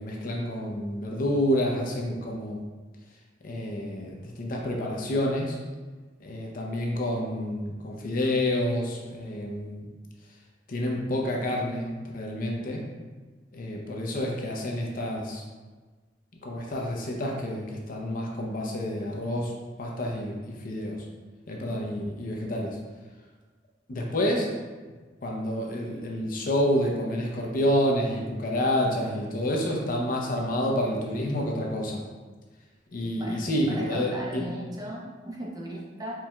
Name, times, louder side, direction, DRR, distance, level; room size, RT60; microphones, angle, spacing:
voice 1, 0.0-2.6 3.4-5.6 6.2-9.9 10.7-12.9 13.5-15.4 16.4-19.5 19.8-21.1 21.5-22.8 23.9-24.5 25.2-32.0 32.9-34.4, left 1 dB, 50° left, 0 dB, 0.6 m, -28 dB
voice 2, 33.0-36.1, equal, 20° right, -3 dB, 0.7 m, -37 dB
4.5 x 3.5 x 2.2 m, 1.3 s
head